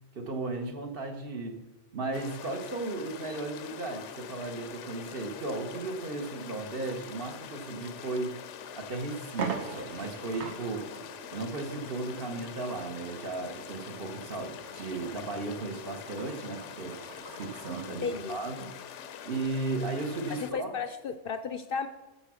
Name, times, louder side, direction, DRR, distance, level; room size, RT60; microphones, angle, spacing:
voice 1, 0.1-1.6 1.9-8.4 8.8-10.9 11.3-17.0 17.4-18.9 19.2-20.7, right 3 dB, 50° right, 5 dB, 1.3 m, -35 dB
sound 1, 2.1-20.5, left 8 dB, 80° left, 1.0 m, -44 dB
sound 2, 8.3-8.4 8.9-9.0 9.3-17.9, right 6 dB, 70° right, 1.3 m, -43 dB
voice 2, 18.0-18.4 20.3-21.9, left 6 dB, 60° left, 10 dB, 0.7 m, -34 dB
8.5 x 6.9 x 6.2 m, 1.1 s
omnidirectional pair, 1.2 m